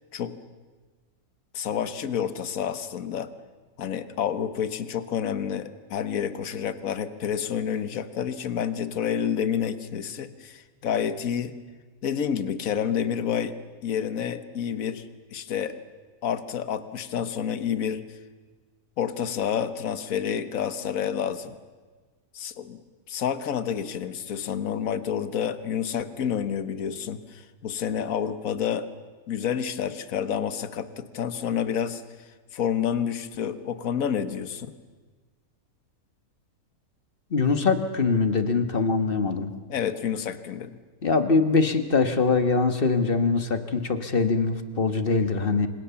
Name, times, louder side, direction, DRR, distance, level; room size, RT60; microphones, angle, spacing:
voice 1, 1.5-3.3 3.8-11.6 12.0-15.8 16.2-18.2 19.0-21.6 22.3-22.8 23.1-28.9 29.3-34.7 39.7-40.7, left 8 dB, 60° left, 12 dB, 1.6 m, -29 dB
voice 2, 37.3-39.5 41.0-45.7, left 4 dB, 35° left, 9 dB, 1.6 m, -23 dB
27.5 x 26.5 x 7.1 m, 1.4 s
omnidirectional pair, 1.6 m